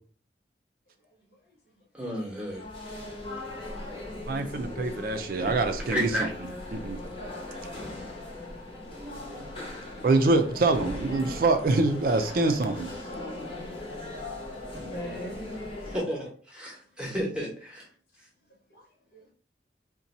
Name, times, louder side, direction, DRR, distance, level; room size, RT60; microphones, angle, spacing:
voice 1, 1.3-1.8 8.9-9.1 9.5-9.6 14.8-15.9 18.7-18.8 19.1-19.3, equal, 60° left, 1.1 m, -44 dB
voice 2, 1.9-2.6 5.4-5.5 5.8-6.3 15.9-17.9, equal, 5° right, 0.9 m, -32 dB
sound 1, 2.4-16.0, left 1 dB, 30° left, 0.9 m, -39 dB
voice 3, 4.3-6.1 6.7-7.0 10.0-12.9, right 3 dB, 50° right, 0.4 m, -25 dB
2.7 x 2.2 x 3.9 m
head